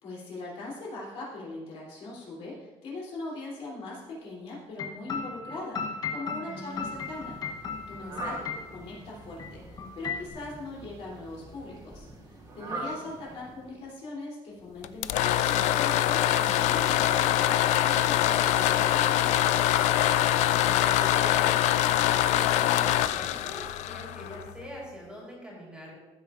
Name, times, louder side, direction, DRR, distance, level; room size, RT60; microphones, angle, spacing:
voice 1, 0.0-7.4 7.9-19.6, left 2 dB, 55° left, -4 dB, 3.0 m, -41 dB
sound 1, 4.8-9.0 9.4-9.5 9.8-10.3, left 5 dB, 35° left, 0.8 m, -36 dB
voice 2, 6.4-6.9 8.0-8.5 12.7-13.1 20.6-25.9, equal, 10° right, -4 dB, 3.5 m, -43 dB
Fowl, 6.6-14.0, right 2 dB, 35° right, 2.4 m, -43 dB
sound 2, 14.8-24.6, left 12 dB, 75° left, 0.4 m, -24 dB
15.5 x 8.4 x 2.5 m, 1.1 s
cardioid pair, 175°, 12 cm